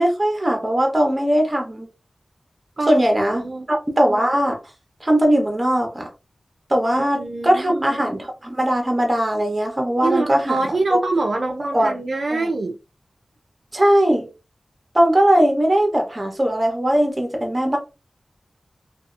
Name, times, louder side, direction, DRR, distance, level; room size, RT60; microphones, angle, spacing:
voice 1, 0.0-1.9 2.9-4.6 5.0-6.1 6.7-10.6 10.9-11.0 11.7-12.0 12.3-12.5 13.7-14.3 14.9-17.8, right 1 dB, 25° right, 0.8 m, -19 dB
voice 2, 3.3-3.7 6.9-7.8 10.0-12.8, right 3 dB, 60° right, 0.3 m, -25 dB
2.7 x 2.3 x 2.4 m
wide cardioid pair, 75°, 0 cm